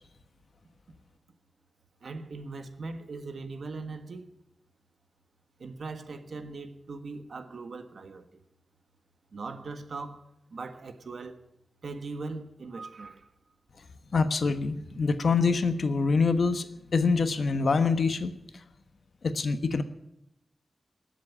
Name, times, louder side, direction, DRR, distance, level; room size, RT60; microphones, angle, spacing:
voice 1, 2.0-4.3 5.6-8.2 9.3-11.4 11.8-13.3, right 3 dB, 65° right, 1.4 m, -40 dB
voice 2, 14.1-18.3 19.2-19.8, left 4 dB, 60° left, 1.2 m, -25 dB
19.5 x 7.6 x 8.6 m
wide cardioid pair, 95°, 0 cm